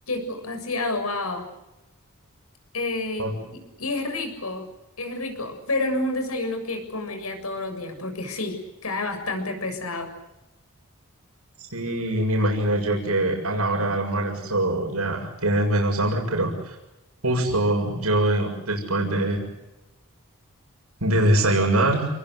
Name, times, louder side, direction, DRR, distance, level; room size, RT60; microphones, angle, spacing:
voice 1, 0.1-1.4 2.7-4.6 5.0-8.6 8.8-10.1, left 2 dB, 80° left, 6 dB, 7.2 m, -29 dB
voice 2, 11.6-16.8 17.2-19.4 21.0-22.1, right 1 dB, 90° right, 1 dB, 7.0 m, -23 dB
29.5 x 21.5 x 8.2 m, 0.97 s
head